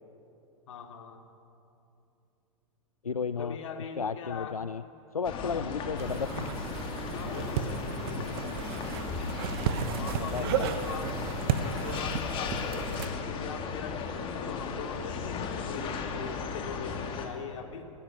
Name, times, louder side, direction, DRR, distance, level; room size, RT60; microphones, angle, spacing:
voice 1, 0.7-1.2 3.4-4.6 5.3-5.8 7.1-8.4 10.0-17.8, left 6 dB, 60° left, 4 dB, 2.7 m, -41 dB
voice 2, 3.0-3.6 4.0-4.8 5.1-6.5 8.1-8.5 9.9-10.7, left 6 dB, 85° left, 14 dB, 0.5 m, -34 dB
sound 1, 5.2-17.3, left 5 dB, 30° left, 2.5 m, -36 dB
sound 2, 6.0-13.1, right 8 dB, 45° right, 1.2 m, -34 dB
27.0 x 13.0 x 9.8 m, 2.8 s
figure-of-eight pair, 105°, 18 cm